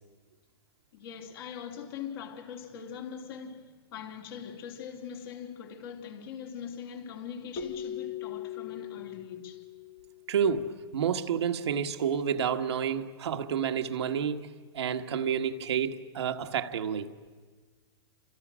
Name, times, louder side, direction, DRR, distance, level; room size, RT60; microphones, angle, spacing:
voice 1, 0.9-9.6, left 7 dB, 60° left, 3.4 m, -42 dB
Keyboard (musical), 7.6-10.4, left 9 dB, 35° left, 1.6 m, -39 dB
voice 2, 10.3-14.5 14.7-17.1, right 7 dB, 80° right, 1.6 m, -29 dB
29.5 x 26.5 x 6.3 m
hypercardioid pair, 145°, 14 cm